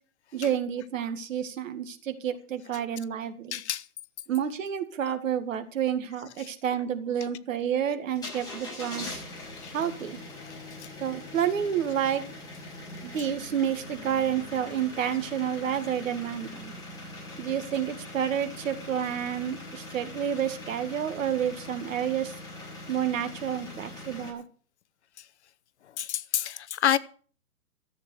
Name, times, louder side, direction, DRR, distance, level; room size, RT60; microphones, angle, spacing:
voice 1, 0.3-3.6 4.3-9.2 9.7-10.2 11.0-12.2 13.0-16.7 17.4-22.3 22.9-24.4, right 9 dB, 60° right, 2.1 m, -29 dB
voice 2, 3.5-3.9 6.4-6.5 9.6-9.7 10.4-10.9 24.2-24.3 25.2-25.3 25.8-27.0, left 10 dB, 50° left, 0.8 m, -29 dB
sound 1, 8.1-24.3, left 2 dB, 10° left, 6.7 m, -42 dB
13.5 x 8.1 x 7.8 m
hypercardioid pair, 150°, 45 cm